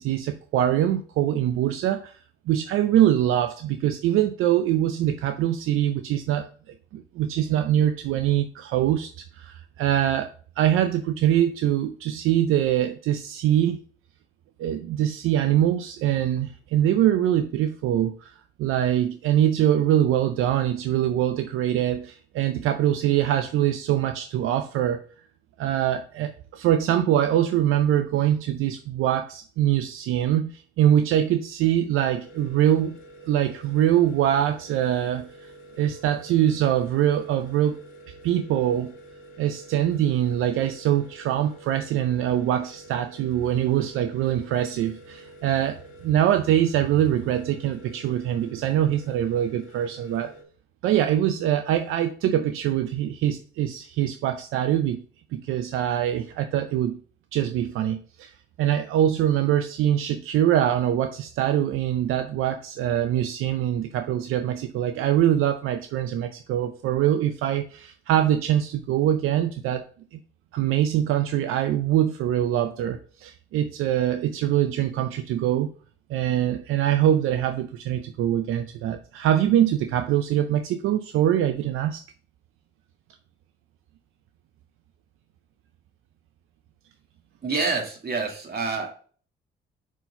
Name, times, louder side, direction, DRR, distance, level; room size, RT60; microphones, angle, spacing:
voice 1, 0.0-2.2 2.5-6.5 6.9-9.1 9.4-10.3 10.6-13.8 14.6-18.3 18.6-25.0 25.6-33.0 33.2-35.5 35.8-37.8 38.2-38.9 39.4-45.8 46.0-50.3 50.8-55.0 55.3-57.0 57.3-58.3 58.6-69.9 70.1-70.2 70.5-75.7 76.1-82.0, right 11 dB, 85° right, 8 dB, 0.6 m, -23 dB
sound 1, 31.9-50.4, right 1 dB, 65° left, 2.3 m, -48 dB
voice 2, 87.4-88.9, right 4 dB, 50° right, 1 dB, 2.5 m, -27 dB
6.1 x 4.6 x 5.5 m, 0.43 s
supercardioid pair, 65°, 21 cm